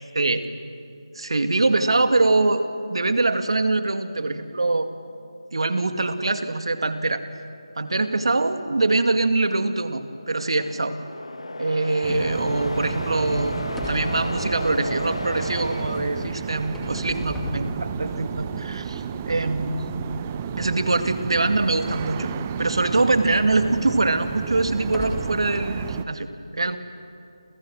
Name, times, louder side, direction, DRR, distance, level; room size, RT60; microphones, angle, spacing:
voice 1, 1.2-2.6 2.9-4.9 5.5-7.2 7.8-11.0 11.6-13.6 13.9-19.8 20.6-22.3 22.6-26.3 26.5-26.8, right 2 dB, 65° right, 8 dB, 2.2 m, -23 dB
sound 1, 10.0-17.0, left 2 dB, 75° left, 1.3 m, -34 dB
sound 2, 12.0-26.0, right 8 dB, 15° right, 0.7 m, -32 dB
sound 3, 13.3-15.3 16.4-18.4 19.1-19.2 19.9-20.0 22.6-22.7 23.3-23.4 24.2-25.5, equal, ahead, 2.5 m, -36 dB
30.0 x 29.0 x 6.4 m, 2.5 s
figure-of-eight pair, 165°, 3 cm